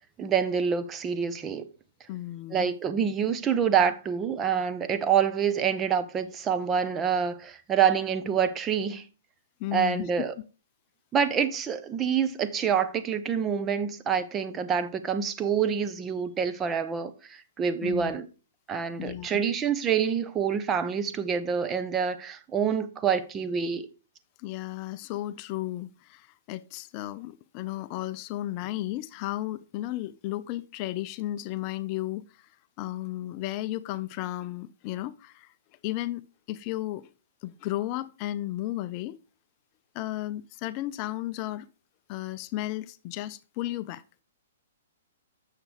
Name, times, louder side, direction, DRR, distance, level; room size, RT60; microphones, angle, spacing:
voice 1, 0.2-1.6 2.5-9.0 9.7-10.3 11.1-18.3 18.7-23.9, right 7 dB, 20° right, 0.7 m, -27 dB
voice 2, 2.1-2.7 9.6-10.3 17.8-18.2 19.0-19.4 24.4-35.5 35.8-36.2 36.5-37.1 37.4-39.2 39.9-41.7 42.1-44.0, left 15 dB, 35° left, 0.4 m, -34 dB
8.8 x 6.7 x 3.3 m
hypercardioid pair, 135°, 0 cm